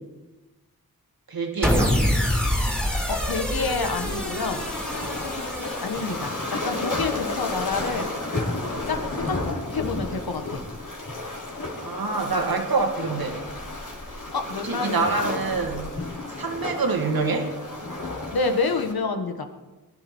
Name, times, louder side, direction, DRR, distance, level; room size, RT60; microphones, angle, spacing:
voice 1, 1.3-2.0 6.0-6.2 11.8-13.4 14.6-15.9 16.4-17.5, right 4 dB, 75° right, 3 dB, 2.3 m, -26 dB
sound 1, 1.6-8.0, left 1 dB, ahead, 2.9 m, -27 dB
voice 2, 3.1-4.7 5.8-8.1 8.8-9.4 9.7-10.6 14.3-15.1 18.3-19.5, left 4 dB, 85° left, 6 dB, 1.6 m, -28 dB
Waves surf, 4.0-18.9, left 2 dB, 60° left, 3.5 m, -32 dB
21.0 x 12.0 x 4.5 m, 1.2 s
wide cardioid pair, 60°, 36 cm